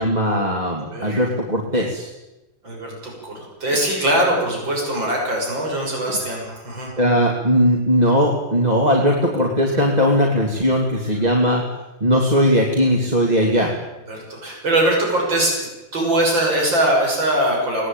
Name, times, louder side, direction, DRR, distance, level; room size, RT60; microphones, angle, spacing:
voice 1, 0.0-2.1 7.0-11.6 12.0-13.7, equal, 20° right, -1 dB, 2.8 m, -18 dB
voice 2, 0.8-1.3 2.6-6.9 14.1-17.9, right 1 dB, 80° right, -1 dB, 7.3 m, -22 dB
25.5 x 18.5 x 9.1 m, 1.0 s
omnidirectional pair, 2.0 m